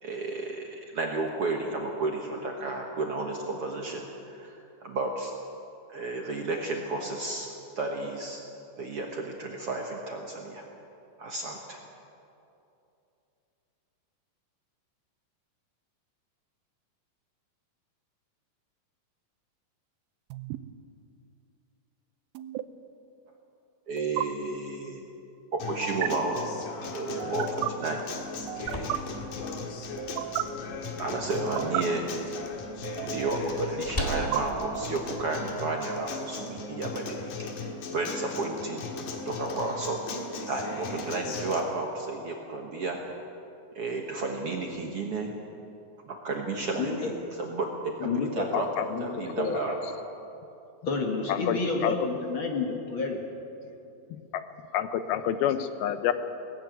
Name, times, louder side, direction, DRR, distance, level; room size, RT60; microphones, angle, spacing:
voice 1, 0.0-4.1 4.3-4.5 4.8-5.3 5.9-8.4 8.8-10.6 11.2-11.8 23.9-25.0 25.5-26.4 26.9-28.0 31.0-32.0 33.0-38.9 39.2-40.0 40.5-43.0 43.7-45.3 46.0-47.1 47.4-48.7 49.0-49.7, right 3 dB, 55° right, 1 dB, 1.7 m, -32 dB
sound 1, 20.3-20.6 22.3-22.6 24.0-24.2 25.8-26.1 27.2-27.7 28.5-29.0 30.0-30.4 31.4-31.8 32.8-33.4 34.1-35.0, right 15 dB, 80° right, 2.5 m, -33 dB
Acoustic guitar, 25.6-41.6, left 4 dB, 65° left, 3.2 m, -37 dB
sound 2, 28.2-36.1, equal, 15° left, 1.3 m, -41 dB
voice 2, 46.8-47.1 48.0-48.5 48.9-49.6 50.9-53.2, left 4 dB, 45° left, 2 dB, 1.8 m, -30 dB
voice 3, 48.5-48.9 51.3-51.9 54.1-54.4 54.7-56.1, left 10 dB, 85° left, 10 dB, 2.7 m, -28 dB
19.0 x 14.5 x 9.4 m, 2.7 s
omnidirectional pair, 4.3 m